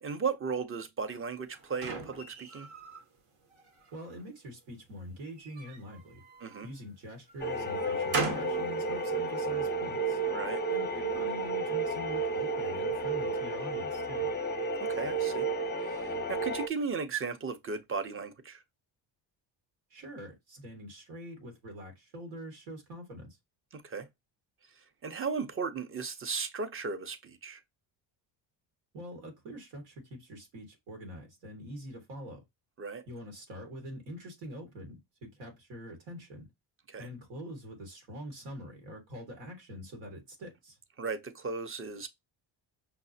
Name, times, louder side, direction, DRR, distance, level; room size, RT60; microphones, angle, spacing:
voice 1, 0.0-2.7 6.4-6.7 10.3-10.6 14.8-15.5 15.7-18.6 23.7-24.1 24.8-27.6 32.8-33.0 36.9-37.1 41.0-42.1, right 5 dB, 25° right, 0.6 m, -36 dB
sound 1, 1.1-3.0 3.5-4.2 5.2-6.7 7.3-8.6, right 4 dB, 70° right, 1.1 m, -38 dB
voice 2, 3.9-6.2 6.6-10.2 10.7-14.3 19.9-23.4 28.9-32.4 33.1-36.5 37.0-40.8, equal, 90° right, 1.5 m, -44 dB
sound 2, 7.4-16.7, right 3 dB, 20° left, 0.5 m, -32 dB
5.7 x 2.0 x 2.6 m
supercardioid pair, 70°, 50 cm